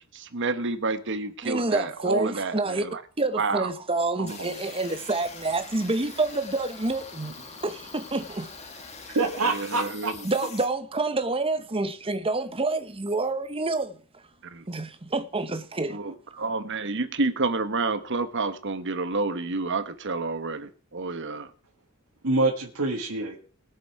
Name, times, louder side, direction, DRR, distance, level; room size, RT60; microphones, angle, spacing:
voice 1, 0.1-3.0 3.4-3.7 4.2-4.6 9.4-10.2 14.5-14.7 15.9-21.5, right 3 dB, 55° right, 1.1 m, -29 dB
voice 2, 1.4-2.8 3.2-7.3 7.6-8.5 10.2-14.2 14.7-16.0 16.3-16.5, right 2 dB, 25° right, 1.0 m, -28 dB
sound 1, 4.3-10.6, left 4 dB, 30° left, 1.9 m, -43 dB
voice 3, 9.1-10.1 22.2-23.4, right 2 dB, 70° right, 1.7 m, -25 dB
20.5 x 6.9 x 4.7 m
head